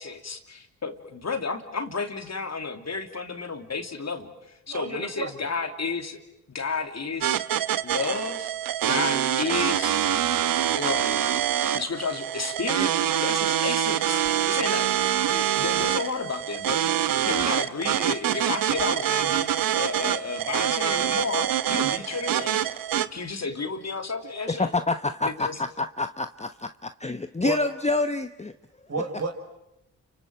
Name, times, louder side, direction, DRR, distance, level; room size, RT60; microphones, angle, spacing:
voice 1, 0.0-6.2 6.5-7.4 7.8-8.5 8.9-10.1 10.7-11.3 11.7-12.9 13.2-14.9 15.2-16.9 17.2-22.7 23.0-24.7 25.2-25.6, left 4 dB, 45° left, 3.1 m, -32 dB
voice 2, 4.7-5.5 27.4-27.6 28.9-29.3, right 3 dB, 45° right, 5.4 m, -31 dB
sound 1, 7.2-23.1, right 10 dB, 65° right, 1.1 m, -25 dB
voice 3, 24.6-28.5, left 3 dB, 20° left, 1.1 m, -27 dB
29.5 x 25.0 x 7.8 m
hypercardioid pair, 40°, 36 cm